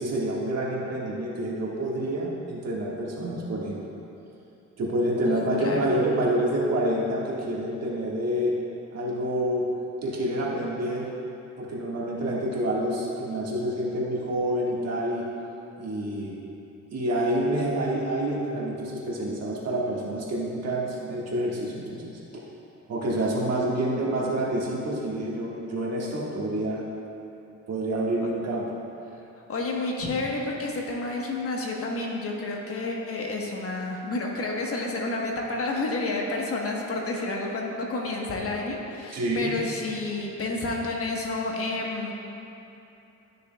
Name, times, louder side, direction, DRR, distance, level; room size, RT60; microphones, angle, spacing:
voice 1, 0.0-3.8 4.8-8.5 8.9-9.7 10.0-11.1 11.6-15.3 15.8-16.4 16.9-22.4 22.9-26.8 27.7-28.6 39.1-39.5, right 1 dB, 55° right, -4 dB, 1.7 m, -28 dB
voice 2, 5.3-5.9 29.5-42.1, left 2 dB, 50° left, -1 dB, 1.2 m, -30 dB
12.5 x 6.6 x 2.3 m, 2.9 s
cardioid pair, 90°, 30 cm